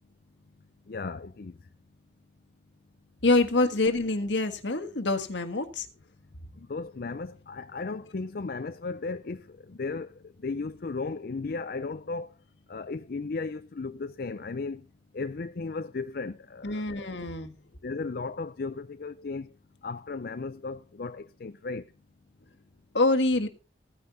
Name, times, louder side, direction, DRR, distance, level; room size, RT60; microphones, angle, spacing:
voice 1, 0.9-1.6 6.6-12.3 12.7-14.9 15.1-17.1 17.8-19.5 19.8-21.9, left 4 dB, 55° left, 0.5 m, -35 dB
voice 2, 3.2-5.9 16.6-17.6 22.9-23.5, left 2 dB, 80° left, 1.6 m, -25 dB
15.5 x 9.5 x 4.0 m
head